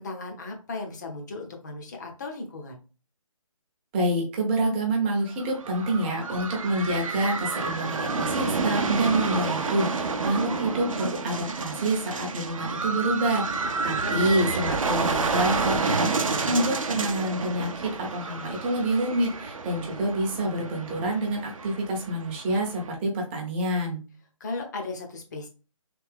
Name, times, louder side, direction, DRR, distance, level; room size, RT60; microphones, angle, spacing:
voice 1, 0.0-2.8 13.6-13.7 14.0-14.5 24.4-25.5, left 3 dB, 30° left, 3 dB, 0.8 m, -36 dB
voice 2, 3.9-24.0, right 1 dB, 20° right, 0 dB, 0.8 m, -27 dB
sound 1, 5.3-22.9, right 4 dB, 70° right, 0.6 m, -30 dB
3.4 x 2.8 x 3.4 m, 0.34 s
figure-of-eight pair, 155°, 18 cm